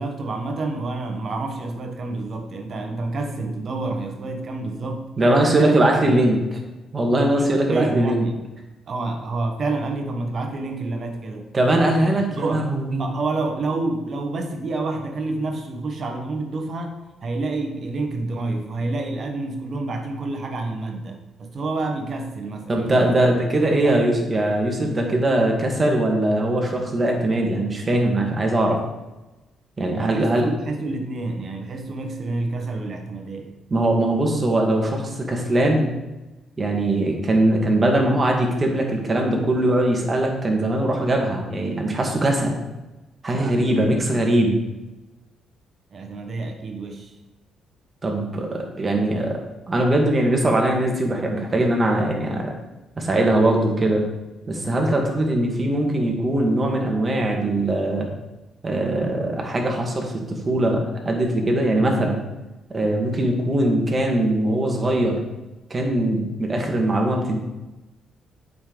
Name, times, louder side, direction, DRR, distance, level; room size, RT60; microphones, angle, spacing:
voice 1, 0.0-5.7 6.0-6.2 7.3-8.4 8.9-11.7 12.3-12.7 13.0-23.2 23.8-24.0 29.9-33.5 43.3-44.1 45.9-47.1, right 3 dB, 50° right, 4 dB, 1.2 m, -28 dB
voice 2, 5.2-6.6 6.9-8.2 11.5-13.0 22.7-28.8 29.8-30.5 33.7-35.9 36.6-42.6 43.2-44.6 48.0-49.4 49.7-52.5 53.0-54.0 54.5-58.1 58.6-62.2 62.7-65.2 65.7-67.4, right 1 dB, 30° right, 1 dB, 1.7 m, -21 dB
7.8 x 5.4 x 3.9 m, 1.1 s
cardioid pair, 90°, 0 cm